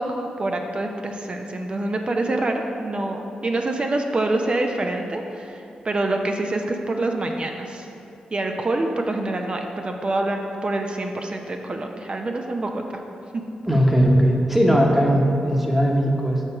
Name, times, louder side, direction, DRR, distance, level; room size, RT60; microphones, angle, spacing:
voice 1, 0.0-7.9 8.3-12.8, right 2 dB, 40° right, 3 dB, 0.5 m, -26 dB
voice 2, 13.7-16.4, equal, 10° right, 0 dB, 1.1 m, -18 dB
6.5 x 3.1 x 5.9 m, 2.8 s
supercardioid pair, 50°, 3 cm